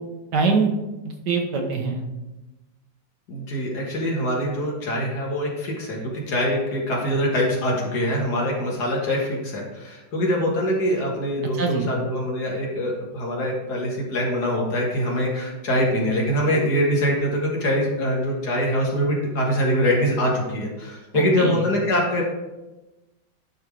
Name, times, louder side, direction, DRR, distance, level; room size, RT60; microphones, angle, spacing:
voice 1, 0.3-0.7 1.3-2.0 11.6-11.9 21.1-21.6, right 4 dB, 65° right, 2 dB, 1.6 m, -23 dB
voice 2, 3.3-22.2, equal, 60° left, -2 dB, 2.0 m, -24 dB
11.0 x 3.6 x 4.8 m, 1.0 s
omnidirectional pair, 2.1 m